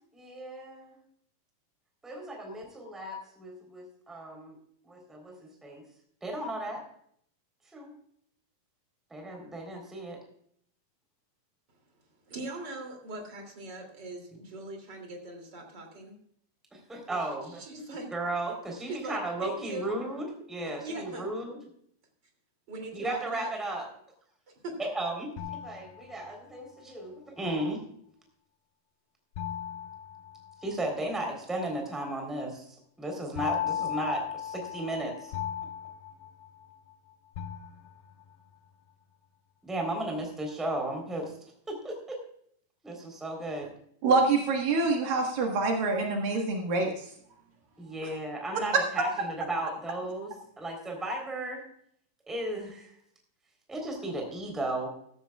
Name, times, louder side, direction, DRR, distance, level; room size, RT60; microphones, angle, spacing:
voice 1, 0.1-1.0 2.0-4.5 4.8-5.8 6.2-6.8 7.7-7.9 9.1-10.2 16.7-17.6 18.1-21.6 22.9-23.9 24.8-27.8 30.6-32.6 33.0-35.3 39.6-41.3 41.7-42.2 42.8-43.7 47.8-50.3 50.6-51.6 52.3-52.9 53.7-54.9, right 1 dB, ahead, 2 dB, 3.0 m, -35 dB
voice 2, 12.3-16.1 17.6-18.1 18.9-19.9 20.6-21.3 22.7-23.5 24.6-24.8, right 2 dB, 30° right, 3 dB, 2.9 m, -40 dB
sound 1, 25.4-26.6 29.4-31.0 33.4-36.9 37.4-38.3, left 10 dB, 75° left, 2.6 m, -37 dB
voice 3, 44.0-47.1, right 3 dB, 65° right, 1 dB, 3.1 m, -26 dB
15.0 x 14.0 x 2.4 m, 0.66 s
omnidirectional pair, 4.5 m